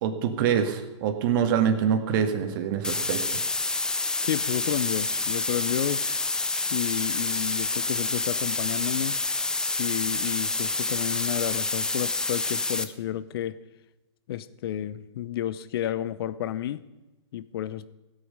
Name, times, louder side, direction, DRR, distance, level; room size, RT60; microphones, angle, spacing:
voice 1, 0.0-3.4, right 8 dB, 45° right, 7 dB, 1.8 m, -25 dB
sound 1, 2.8-12.8, left 3 dB, 5° left, 0.5 m, -28 dB
voice 2, 4.2-6.1 6.7-9.2 9.7-13.6 14.3-16.8 17.3-17.9, left 12 dB, 50° left, 16 dB, 0.7 m, -31 dB
16.5 x 8.6 x 5.4 m, 1.1 s
hypercardioid pair, 125°, 16 cm